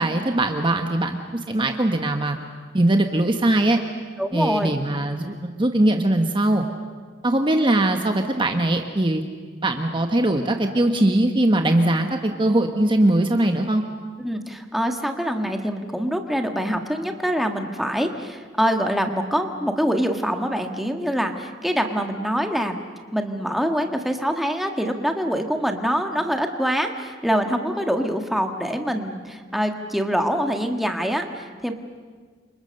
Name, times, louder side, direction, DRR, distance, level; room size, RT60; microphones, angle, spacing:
voice 1, 0.0-2.4 2.7-3.8 4.3-6.7 7.2-9.2 9.6-13.8, right 1 dB, 25° right, 5 dB, 1.2 m, -21 dB
voice 2, 4.2-4.7 14.2-22.8 23.1-31.7, equal, ahead, 4 dB, 1.7 m, -24 dB
29.0 x 26.0 x 6.6 m, 1.5 s
head